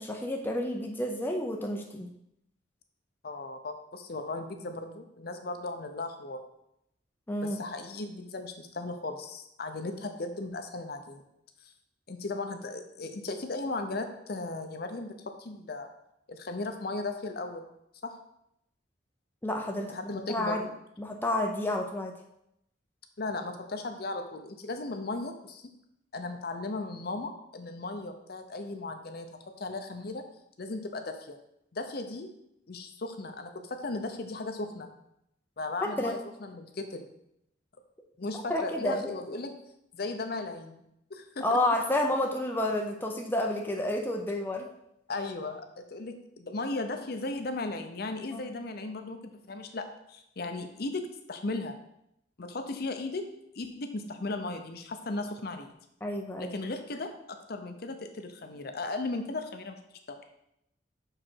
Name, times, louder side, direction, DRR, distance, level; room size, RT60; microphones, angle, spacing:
voice 1, 0.0-2.1 7.3-7.6 19.4-19.9 20.3-20.6 21.0-22.2 36.0-36.2 38.5-39.1 41.4-44.7 48.3-48.4 56.0-56.5, left 1 dB, 10° left, 1 dB, 0.5 m, -30 dB
voice 2, 3.2-6.4 7.4-11.2 12.1-15.9 16.3-17.6 18.0-18.1 19.9-20.6 23.2-25.6 26.1-29.3 29.6-30.2 30.6-31.4 31.7-32.3 32.7-34.9 35.6-37.1 38.2-39.5 39.9-40.8 41.1-41.4 45.1-51.7 52.4-53.3 53.5-55.7 56.4-59.8 60.1-60.2, left 2 dB, 55° left, 6 dB, 0.7 m, -36 dB
6.0 x 4.9 x 4.5 m, 0.79 s
head